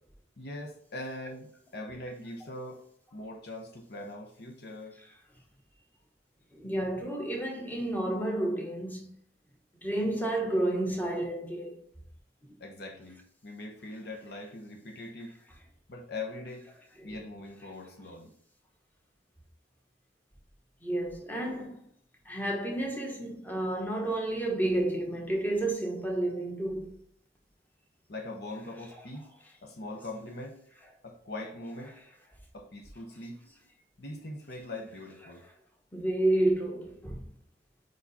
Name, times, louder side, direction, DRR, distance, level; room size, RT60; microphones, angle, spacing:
voice 1, 0.4-2.9 3.1-5.0 12.6-15.4 15.9-16.7 17.0-18.3 28.1-29.3 29.6-30.6 31.0-32.0 32.5-33.5 34.0-35.4, left 2 dB, 60° left, 0.9 m, -41 dB
voice 2, 6.5-9.1 9.8-11.8 20.8-21.8 22.2-26.9 35.9-37.2, right 1 dB, 10° left, 1.2 m, -30 dB
4.8 x 4.8 x 4.1 m
head